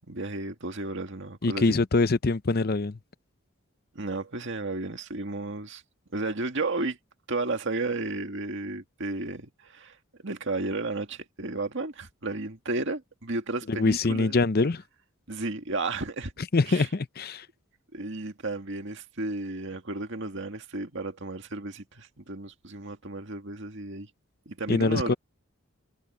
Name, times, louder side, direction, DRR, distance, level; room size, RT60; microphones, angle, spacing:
voice 1, 0.1-1.8 3.9-5.8 6.1-7.0 7.3-10.0 10.2-14.4 15.3-16.3 16.7-16.9 17.9-24.1 24.5-25.2, right 2 dB, 60° right, 2.1 m, -33 dB
voice 2, 1.4-3.0 13.7-14.8 16.5-17.4 24.7-25.1, left 3 dB, 45° left, 0.7 m, -24 dB
head